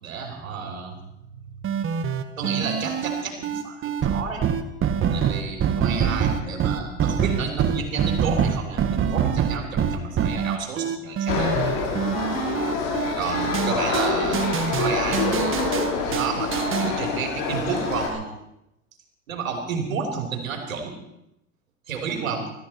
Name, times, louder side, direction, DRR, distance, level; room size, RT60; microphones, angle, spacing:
voice 1, 0.0-0.9 2.4-4.5 5.1-11.5 13.2-14.5 14.8-15.8 16.1-18.3 19.3-21.0 21.9-22.5, right 5 dB, 90° right, 2 dB, 3.3 m, -31 dB
sound 1, 1.6-16.9, right 7 dB, 30° right, 1.5 m, -25 dB
sound 2, 11.3-18.1, left 4 dB, 55° left, 5.0 m, -26 dB
22.5 x 13.5 x 4.3 m, 0.86 s
hypercardioid pair, 95°, 39 cm